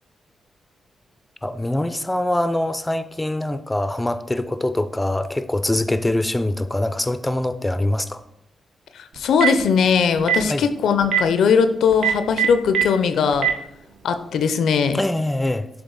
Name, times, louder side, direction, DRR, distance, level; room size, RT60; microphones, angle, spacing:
voice 1, 1.4-8.2 10.4-10.7 14.9-15.7, left 1 dB, 15° left, 0.4 m, -23 dB
voice 2, 9.0-13.5 14.0-15.0, left 6 dB, 75° left, 0.4 m, -19 dB
Telephone, 9.2-9.6 10.2-10.4 11.0-11.2 11.9-12.8 13.3-13.5, right 11 dB, 75° right, 0.8 m, -19 dB
7.0 x 3.6 x 3.7 m
supercardioid pair, 50°, 0 cm